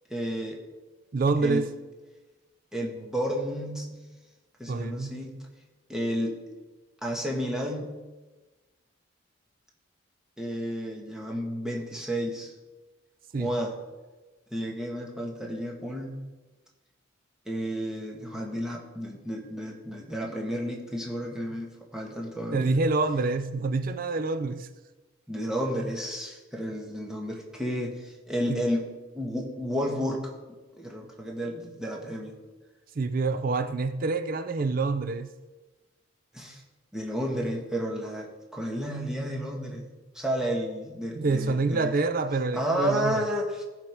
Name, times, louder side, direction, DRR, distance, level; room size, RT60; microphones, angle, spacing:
voice 1, 0.1-0.6 1.4-1.6 2.7-4.0 4.6-5.4 5.9-6.4 7.0-7.9 10.4-12.5 13.4-13.7 14.5-16.2 17.4-22.8 25.3-28.9 29.1-30.3 30.7-32.4 36.3-36.6 36.9-41.9 42.5-43.6, equal, 5° right, -2 dB, 1.4 m, -31 dB
voice 2, 1.1-1.7 4.7-5.2 13.3-13.5 22.5-24.7 28.5-28.7 33.0-35.3 41.1-43.3, right 3 dB, 45° right, 10 dB, 0.4 m, -27 dB
14.5 x 5.1 x 4.5 m, 1.2 s
head